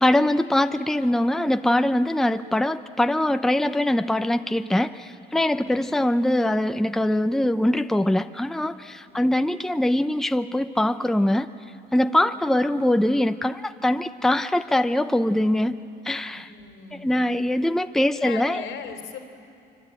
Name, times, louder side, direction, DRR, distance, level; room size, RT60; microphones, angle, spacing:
voice 1, 0.0-11.5 11.9-15.8 16.0-16.5 17.0-18.6, left 1 dB, ahead, 9 dB, 0.7 m, -22 dB
voice 2, 5.5-5.9 9.1-9.3 16.2-17.1 18.1-19.2, left 6 dB, 85° left, 5 dB, 3.2 m, -39 dB
24.5 x 24.5 x 9.1 m, 2.5 s
cardioid pair, 90°, 20 cm